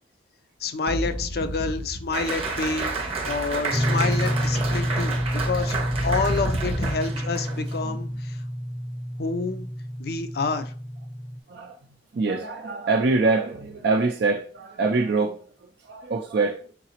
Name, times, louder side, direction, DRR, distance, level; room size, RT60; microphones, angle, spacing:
voice 1, 0.6-3.0 3.2-5.7 6.0-8.4 9.2-9.7 10.0-10.7, left 4 dB, 60° left, 0.5 m, -28 dB
sound 1, 0.9-7.2, equal, 85° left, 1.4 m, -33 dB
Applause, 2.1-7.8, right 4 dB, 35° right, 0.8 m, -31 dB
sound 2, 3.7-11.4, equal, ahead, 0.5 m, -28 dB
voice 2, 12.1-15.4 15.9-16.6, right 3 dB, 60° right, 0.4 m, -24 dB
4.7 x 3.9 x 2.9 m
head